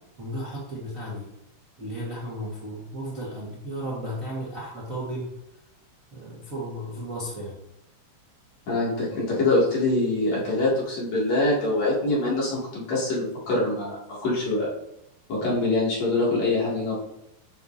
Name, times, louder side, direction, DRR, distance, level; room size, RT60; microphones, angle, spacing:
voice 1, 0.2-1.3 1.8-5.3 6.1-7.6, equal, 80° right, -6 dB, 0.7 m, -34 dB
voice 2, 8.7-14.7 15.3-17.0, left 2 dB, 45° left, -6 dB, 3.5 m, -24 dB
10.5 x 6.5 x 2.8 m, 0.84 s
omnidirectional pair, 4.6 m